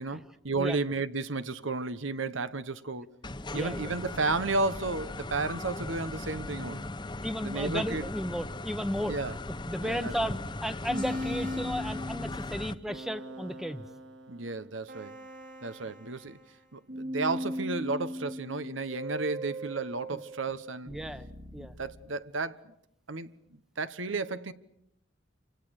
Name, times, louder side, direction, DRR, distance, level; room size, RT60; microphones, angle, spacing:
voice 1, 0.0-3.1 3.5-6.9 7.4-8.0 9.1-9.4 9.8-10.4 14.3-15.2 15.6-16.4 16.7-20.9 21.6-22.6 23.1-24.5, right 3 dB, 80° right, 1.2 m, -33 dB
sound 1, 3.2-12.7, left 2 dB, 20° left, 1.0 m, -38 dB
voice 2, 3.5-3.9 7.2-9.1 9.7-13.8 20.1-20.2 20.9-21.3 21.5-21.7, equal, ahead, 1.0 m, -34 dB
sound 2, 10.9-16.6 16.9-22.0, equal, 60° right, 4.4 m, -39 dB
28.5 x 26.0 x 6.6 m
head